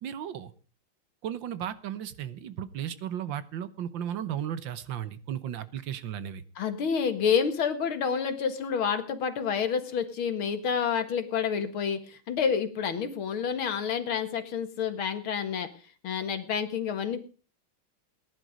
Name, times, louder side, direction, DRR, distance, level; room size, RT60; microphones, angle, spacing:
voice 1, 0.0-0.5 1.2-6.4, right 10 dB, 65° right, 14 dB, 1.7 m, -35 dB
voice 2, 6.6-15.7 16.0-17.2, left 6 dB, 75° left, 8 dB, 2.5 m, -29 dB
19.0 x 11.0 x 5.1 m, 0.37 s
omnidirectional pair, 2.3 m